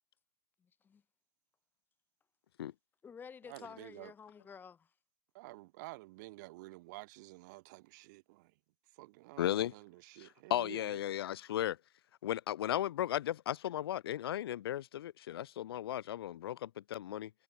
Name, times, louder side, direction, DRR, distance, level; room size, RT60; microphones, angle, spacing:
voice 1, 0.6-1.0 3.0-4.9, left 6 dB, 15° left, 4.3 m, -51 dB
voice 2, 3.5-4.1 5.3-8.5 8.9-11.0, right 21 dB, 50° right, 2.8 m, -50 dB
voice 3, 9.4-9.7 10.5-11.8 12.2-17.3, left 12 dB, 80° left, 0.4 m, -35 dB
hypercardioid pair, 140°, 12 cm